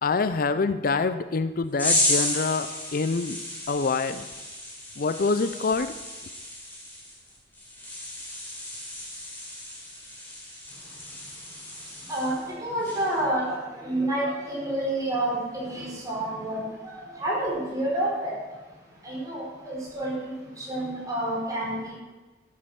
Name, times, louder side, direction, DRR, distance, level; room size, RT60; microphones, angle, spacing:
voice 1, 0.0-3.4 3.7-4.3 5.0-5.9, left 4 dB, 50° left, 12 dB, 0.5 m, -26 dB
sound 1, 1.8-12.5 12.8-13.2, left 1 dB, 10° left, 4.3 m, -32 dB
voice 2, 12.6-13.6 13.8-16.6 16.9-18.3 19.0-20.1 20.7-21.9, right 1 dB, 20° right, -5 dB, 4.9 m, -28 dB
13.5 x 8.6 x 7.1 m, 1.2 s
head